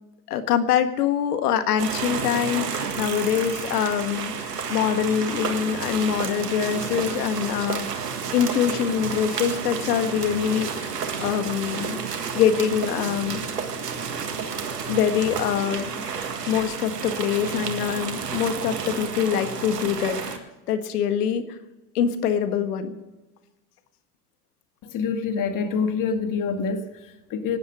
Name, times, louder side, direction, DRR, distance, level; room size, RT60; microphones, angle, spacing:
voice 1, 0.3-12.0 12.3-13.4 14.9-15.9 16.5-21.6 21.9-23.0, left 8 dB, 75° left, 9 dB, 1.7 m, -24 dB
sound 1, 1.8-20.4, right 6 dB, 90° right, 1.7 m, -31 dB
voice 2, 24.8-27.6, left 5 dB, 40° left, 6 dB, 2.3 m, -26 dB
18.0 x 10.5 x 6.3 m, 1.1 s
hypercardioid pair, 80°, 46 cm